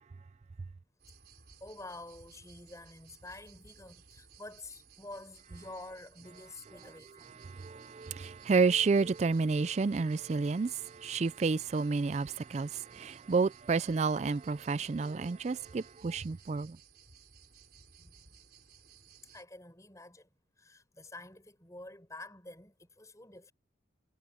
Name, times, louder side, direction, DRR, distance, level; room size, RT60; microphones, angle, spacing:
sound 1, 1.0-19.4, right 7 dB, 50° right, 4.4 m, -59 dB
voice 1, 1.6-7.4 18.0-18.1 19.2-20.3 20.6-23.5, left 2 dB, 15° left, 6.9 m, -49 dB
voice 2, 7.4-16.8, right 4 dB, 35° right, 0.3 m, -30 dB
head